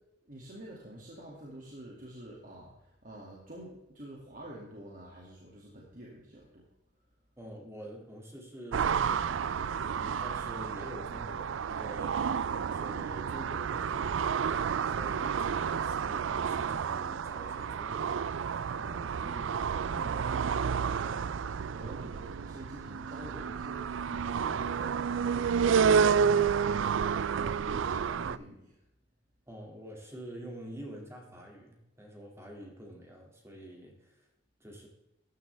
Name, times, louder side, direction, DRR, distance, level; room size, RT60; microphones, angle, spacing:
voice 1, 0.2-6.6 18.7-28.8, right 1 dB, 45° right, -3 dB, 2.3 m, -48 dB
voice 2, 7.4-14.5 14.8-18.2 29.5-34.3 34.6-34.9, equal, 15° right, 0 dB, 2.4 m, -47 dB
sound 1, 8.7-28.4, right 6 dB, 90° right, 0.4 m, -30 dB
14.5 x 10.5 x 3.4 m, 0.90 s
head